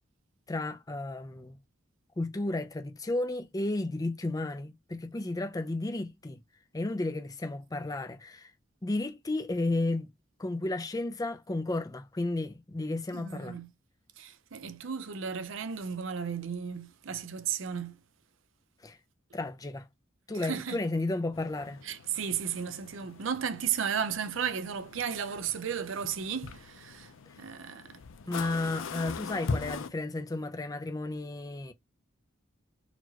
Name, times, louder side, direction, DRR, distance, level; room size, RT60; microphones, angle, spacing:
voice 1, 0.5-1.6 2.2-6.4 6.7-8.5 8.8-10.1 10.4-13.6 18.8-19.0 19.3-19.9 20.3-21.8 28.3-31.7, left 2 dB, 20° left, 0.5 m, -33 dB
voice 2, 13.1-13.7 14.2-18.0 20.3-20.9 21.8-27.1 27.4-28.0, right 7 dB, 70° right, 0.6 m, -34 dB
sound 1, 21.3-29.9, left 4 dB, 70° left, 0.5 m, -41 dB
4.1 x 3.0 x 2.8 m
head